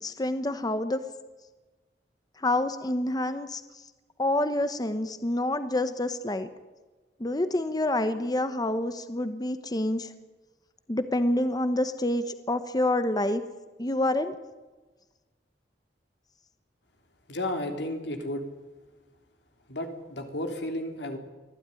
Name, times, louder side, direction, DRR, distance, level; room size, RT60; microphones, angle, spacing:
voice 1, 0.0-1.0 2.4-3.9 4.2-6.5 7.2-10.1 10.9-13.4 13.8-14.4, left 1 dB, 25° left, 10 dB, 1.0 m, -27 dB
voice 2, 17.3-18.4 19.7-21.2, left 1 dB, 85° left, 5 dB, 3.4 m, -33 dB
24.5 x 16.0 x 9.9 m, 1.2 s
head